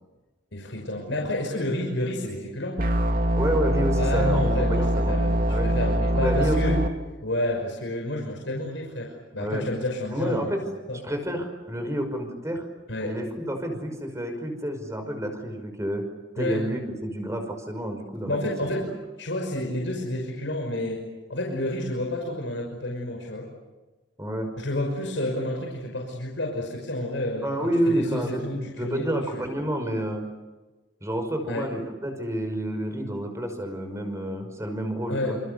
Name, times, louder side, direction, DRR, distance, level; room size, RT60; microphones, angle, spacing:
voice 1, 0.5-2.8 4.0-6.8 7.2-10.6 10.9-11.0 12.9-13.1 16.4-16.7 18.3-18.9 19.2-21.0 21.3-23.5 24.6-27.5 27.9-29.1 29.3-29.5 31.5-31.7 35.1-35.4, left 1 dB, 85° left, 0 dB, 5.8 m, -30 dB
sound 1, 2.8-6.9, equal, 50° right, 2.3 m, -23 dB
voice 2, 3.4-5.1 5.5-5.7 6.1-6.8 9.4-9.6 10.1-10.7 11.0-12.6 13.0-16.0 16.4-18.9 24.2-24.5 27.4-28.5 28.8-30.2 31.0-35.4, right 1 dB, 15° right, 5 dB, 5.5 m, -29 dB
29.0 x 28.0 x 6.9 m, 1.2 s
head